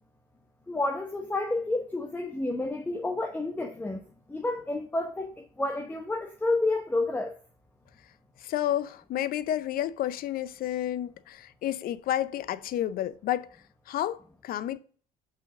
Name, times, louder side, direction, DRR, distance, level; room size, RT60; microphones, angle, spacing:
voice 1, 0.7-4.0 4.3-5.3 5.6-7.3, left 2 dB, 10° left, 0.9 m, -30 dB
voice 2, 8.4-13.5 13.9-14.8, left 12 dB, 55° left, 0.6 m, -30 dB
5.8 x 4.9 x 5.9 m
supercardioid pair, 75°, 18 cm